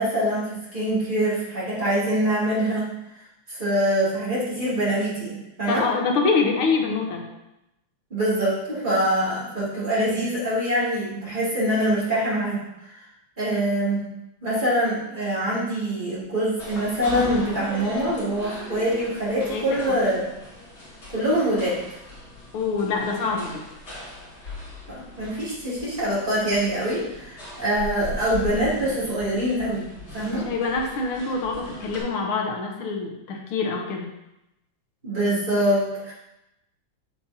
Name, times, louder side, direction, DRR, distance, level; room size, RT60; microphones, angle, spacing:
voice 1, 0.0-3.0 3.5-5.9 8.1-12.9 13.4-14.0 14.4-20.3 21.1-21.8 23.2-23.3 24.9-30.5 35.0-36.1, right 1 dB, 25° right, -9 dB, 2.7 m, -24 dB
voice 2, 5.7-7.3 19.5-19.6 22.5-23.6 30.3-34.1, left 4 dB, 85° left, 1 dB, 1.9 m, -25 dB
sound 1, 16.6-32.0, left 2 dB, 65° left, 3.5 m, -39 dB
7.4 x 6.9 x 2.8 m, 0.89 s
omnidirectional pair, 2.3 m